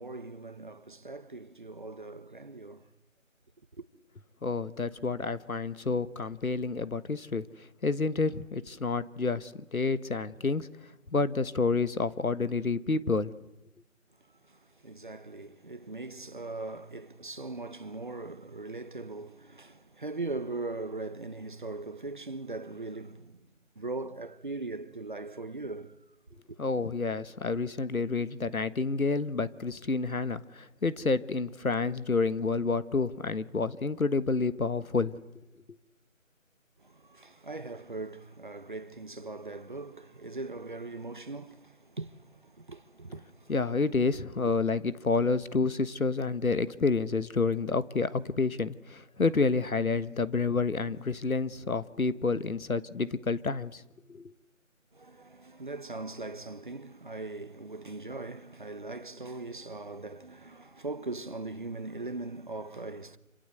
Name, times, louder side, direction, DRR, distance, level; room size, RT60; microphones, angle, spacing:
voice 1, 0.0-2.9 3.7-3.8 14.3-23.5 23.7-26.0 36.8-43.5 44.4-44.5 54.9-63.2, right 3 dB, 35° right, 1.1 m, -40 dB
voice 2, 4.4-7.4 7.8-10.7 11.1-13.3 26.6-35.1 43.5-53.8 54.1-54.3, left 4 dB, 85° left, 1.5 m, -29 dB
27.0 x 26.0 x 8.0 m
figure-of-eight pair, 170°, 41 cm